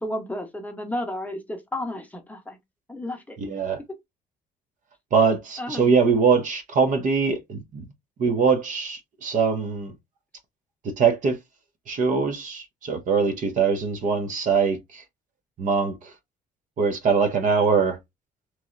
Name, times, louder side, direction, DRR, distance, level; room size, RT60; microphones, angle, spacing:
voice 1, 0.0-2.6 2.9-3.4 5.6-5.9, left 1 dB, 10° left, 0.7 m, -32 dB
voice 2, 3.4-3.8 5.1-7.8 8.2-9.9 10.8-11.4 11.9-15.0 15.6-16.1 16.8-18.0, right 5 dB, 50° right, 0.8 m, -22 dB
3.0 x 2.8 x 2.4 m
cardioid pair, 110°, 17 cm